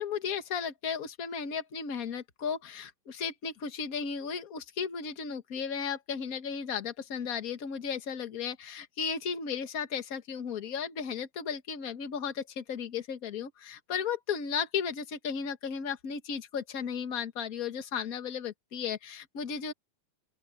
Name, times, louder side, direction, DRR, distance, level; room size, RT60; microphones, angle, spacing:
voice 1, 0.0-19.7, left 6 dB, 40° left, 1.4 m, -35 dB
open air
omnidirectional pair, 3.4 m